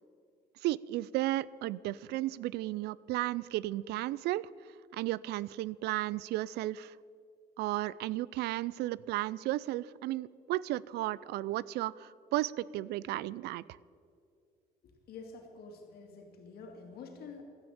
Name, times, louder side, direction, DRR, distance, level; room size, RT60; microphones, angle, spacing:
voice 1, 0.6-4.5 4.9-6.9 7.6-13.6, right 16 dB, 75° right, 21 dB, 0.4 m, -34 dB
voice 2, 14.8-17.4, left 4 dB, 65° left, 3 dB, 2.7 m, -48 dB
13.5 x 9.7 x 8.9 m, 2.2 s
cardioid pair, 110°, 17 cm